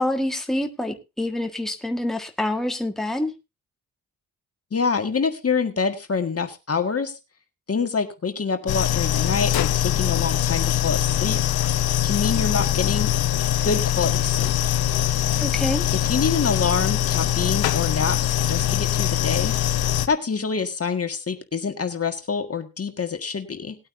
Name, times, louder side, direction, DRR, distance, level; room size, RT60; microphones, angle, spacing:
voice 1, 0.0-3.3 15.4-15.8, left 1 dB, ahead, 1.6 m, -26 dB
voice 2, 4.7-7.2 7.7-11.4 12.0-13.1 13.6-14.5 15.9-18.2 18.5-19.5 20.1-23.8, left 5 dB, 40° left, 1.7 m, -26 dB
sound 1, 8.7-20.1, left 12 dB, 80° left, 0.9 m, -22 dB
19.0 x 8.8 x 2.7 m
cardioid pair, 65°, 36 cm